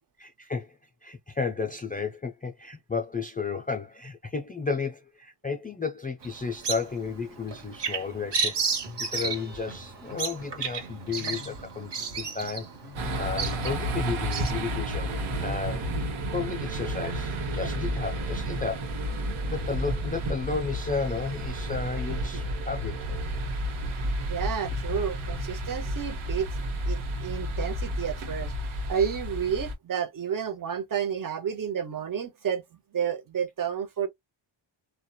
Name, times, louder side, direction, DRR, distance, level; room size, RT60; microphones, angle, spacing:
voice 1, 0.2-0.8 1.0-8.6 9.0-12.7 13.2-15.1 15.4-15.8 16.3-18.9 19.5-23.2, left 5 dB, 20° left, 0.3 m, -33 dB
Bird vocalization bird call bird song, 6.2-14.5, right 5 dB, 60° right, 1.1 m, -33 dB
sound 1, 7.1-15.2, equal, 20° right, 1.1 m, -48 dB
sound 2, 13.0-29.7, right 1 dB, 80° right, 1.0 m, -31 dB
voice 2, 24.3-26.5 26.9-32.6 32.9-34.1, right 8 dB, 45° right, 0.7 m, -31 dB
2.8 x 2.2 x 2.2 m
cardioid pair, 95°, 47 cm